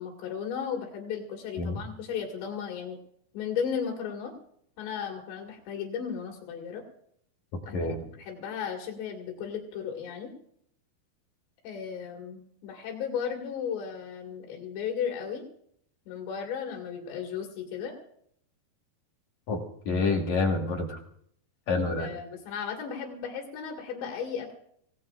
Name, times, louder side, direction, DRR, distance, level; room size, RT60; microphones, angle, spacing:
voice 1, 0.0-3.0 3.3-4.3 4.8-6.8 7.6-10.3 11.6-15.4 16.1-18.0 22.0-24.5, left 7 dB, 80° left, 1 dB, 4.3 m, -35 dB
voice 2, 19.9-21.0 21.7-22.1, left 3 dB, 55° left, 1 dB, 2.3 m, -27 dB
26.5 x 18.0 x 2.5 m, 0.67 s
omnidirectional pair, 5.0 m